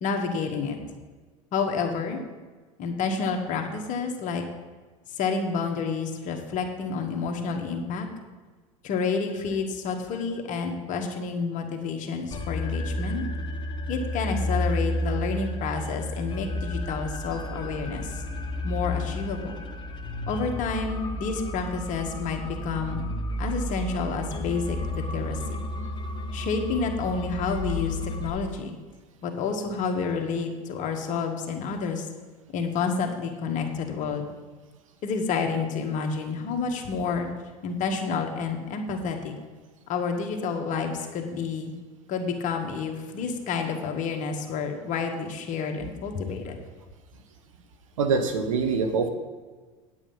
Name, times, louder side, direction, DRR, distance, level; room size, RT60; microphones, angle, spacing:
voice 1, 0.0-0.8 1.5-2.2 2.8-4.4 5.2-8.1 8.8-13.2 13.9-18.2 18.6-19.6 20.3-23.0 23.4-25.4 26.3-28.7 29.2-32.1 32.5-34.3 35.0-37.3 37.6-39.3 39.9-41.7 42.1-46.6, left 5 dB, 50° left, 3 dB, 1.7 m, -29 dB
sound 1, 12.3-28.3, left 1 dB, 30° left, 1.3 m, -32 dB
voice 2, 48.0-49.1, right 5 dB, 90° right, 8 dB, 1.3 m, -24 dB
8.9 x 8.5 x 5.5 m, 1.4 s
hypercardioid pair, 90°, 16 cm